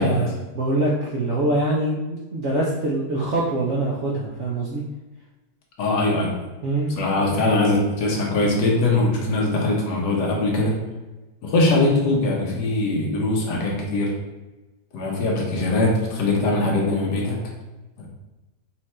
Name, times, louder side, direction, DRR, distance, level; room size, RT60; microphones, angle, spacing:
voice 1, 0.0-4.8 6.6-7.2, right 1 dB, 65° right, -4 dB, 0.7 m, -24 dB
voice 2, 5.8-6.5 7.0-10.8 11.4-14.1 14.9-17.4 18.0-18.1, left 2 dB, 70° left, -1 dB, 1.5 m, -21 dB
4.4 x 2.5 x 4.2 m, 1.1 s
omnidirectional pair, 2.0 m